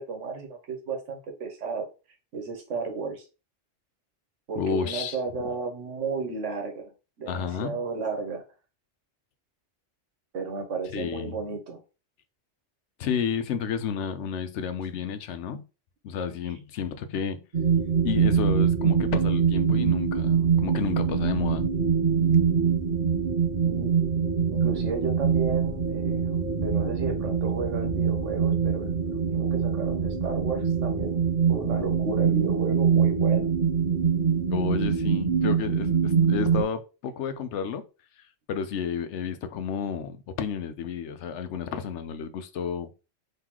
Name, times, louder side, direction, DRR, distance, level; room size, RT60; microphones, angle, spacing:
voice 1, 0.0-1.9 2.3-3.3 4.5-6.9 7.2-8.4 10.3-11.8 23.6-24.0 24.5-26.3 26.6-31.2 31.5-33.5, right 4 dB, 85° right, 1.3 m, -33 dB
voice 2, 4.6-5.2 7.3-7.8 10.9-11.4 13.0-15.6 16.0-17.4 18.0-21.7 34.5-37.8 38.5-42.9, left 7 dB, 75° left, 0.9 m, -31 dB
sound 1, 17.5-36.6, right 6 dB, 45° right, 1.2 m, -24 dB
3.7 x 3.2 x 2.9 m
omnidirectional pair, 1.2 m